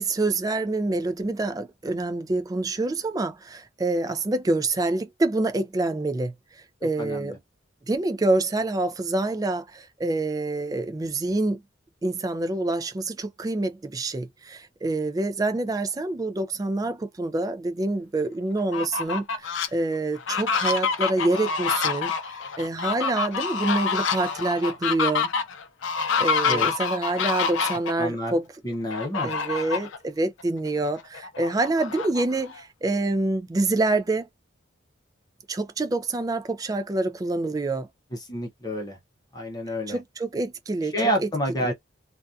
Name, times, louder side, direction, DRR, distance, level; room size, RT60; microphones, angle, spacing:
voice 1, 0.0-6.3 6.8-7.4 7.9-11.6 12.0-25.3 26.2-28.5 29.2-34.3 35.5-37.9 39.9-40.9 41.2-41.3 41.6-41.7, right 2 dB, 20° right, 0.3 m, -26 dB
voice 2, 7.0-7.4 26.4-26.7 28.0-28.3 28.6-29.3 38.3-39.0 39.3-40.0 40.9-41.7, equal, 20° left, 0.6 m, -28 dB
Fowl, 18.6-19.7 20.2-27.9 28.9-30.0 30.4-30.5 30.9-32.6, left 5 dB, 80° left, 0.5 m, -27 dB
2.6 x 2.3 x 2.3 m
head